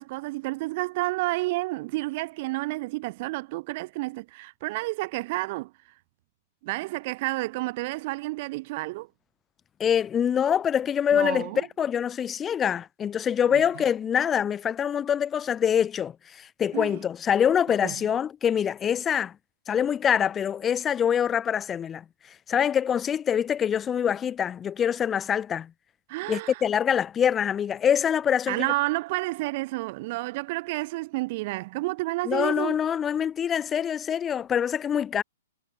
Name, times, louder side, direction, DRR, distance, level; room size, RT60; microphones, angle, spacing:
voice 1, 0.0-5.7 6.6-9.1 11.1-11.7 13.5-13.6 16.7-16.9 17.8-17.9 26.1-26.6 28.5-32.8, right 21 dB, 45° right, 2.4 m, -30 dB
voice 2, 9.8-19.4 19.7-22.0 22.5-25.7 26.3-28.7 32.3-35.2, left 8 dB, 20° left, 7.2 m, -25 dB
figure-of-eight pair, 115°, 0 cm